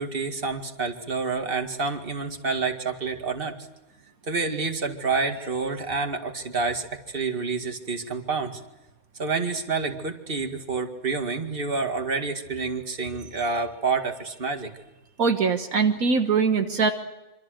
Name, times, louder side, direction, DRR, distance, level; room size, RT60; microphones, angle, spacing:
voice 1, 0.0-3.7 4.3-8.6 9.2-14.7, right 4 dB, 40° right, 4 dB, 2.3 m, -28 dB
voice 2, 15.2-16.9, right 5 dB, 75° right, 5 dB, 1.8 m, -22 dB
26.0 x 26.0 x 6.6 m, 1.0 s
omnidirectional pair, 1.5 m